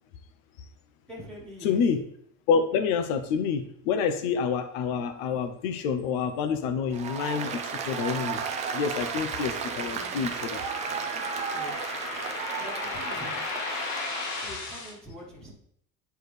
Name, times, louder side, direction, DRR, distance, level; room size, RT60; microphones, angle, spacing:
voice 1, 1.1-1.8 11.4-11.8 12.6-13.4 14.4-15.5, equal, ahead, -7 dB, 1.5 m, -44 dB
voice 2, 1.6-2.0 2.5-8.4 8.7-10.6, left 6 dB, 85° left, 9 dB, 0.9 m, -27 dB
Applause, 6.9-14.4, right 6 dB, 20° right, 0.4 m, -34 dB
sound 1, 7.4-14.9, left 4 dB, 50° left, 1.8 m, -37 dB
10.0 x 4.6 x 3.3 m, 0.69 s
cardioid pair, 175°, 39 cm